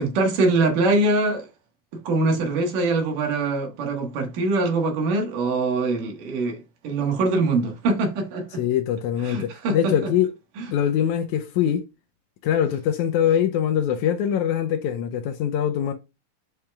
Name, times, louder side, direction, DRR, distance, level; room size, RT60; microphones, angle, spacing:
voice 1, 0.0-1.5 2.0-8.6 9.2-9.9 10.6-10.7, right 3 dB, 70° right, 2.9 m, -23 dB
voice 2, 8.6-10.3 10.7-11.9 12.4-15.9, left 9 dB, 85° left, 1.7 m, -23 dB
10.0 x 4.9 x 2.3 m
omnidirectional pair, 4.0 m